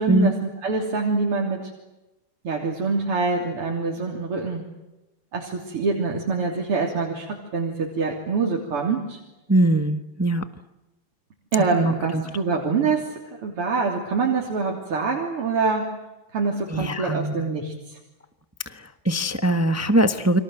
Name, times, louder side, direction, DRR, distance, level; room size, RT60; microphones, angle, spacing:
voice 1, 0.0-1.7 2.4-4.6 5.3-9.2 11.5-13.1 13.4-15.9 16.3-18.0, right 4 dB, 80° right, -1 dB, 4.2 m, -25 dB
voice 2, 9.5-10.5 11.8-12.2 16.7-17.5 18.7-20.4, right 1 dB, 10° right, 10 dB, 0.7 m, -22 dB
29.5 x 25.0 x 7.9 m, 1.0 s
omnidirectional pair, 2.4 m